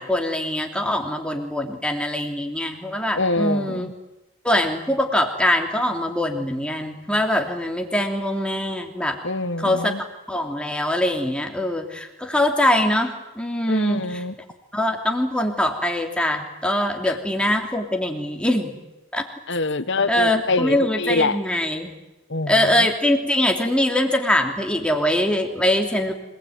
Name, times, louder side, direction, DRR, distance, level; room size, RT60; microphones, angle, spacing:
voice 1, 0.0-3.9 4.4-9.2 9.6-9.9 10.3-14.0 14.7-18.7 19.1-19.2 20.1-21.9 22.5-26.1, left 1 dB, 5° left, 3 dB, 3.0 m, -23 dB
voice 2, 3.2-3.9 9.2-10.0 13.7-14.3 17.0-17.2 19.5-21.4 22.3-22.9, left 3 dB, 55° left, 12 dB, 1.5 m, -25 dB
26.5 x 19.5 x 9.4 m, 1.0 s
head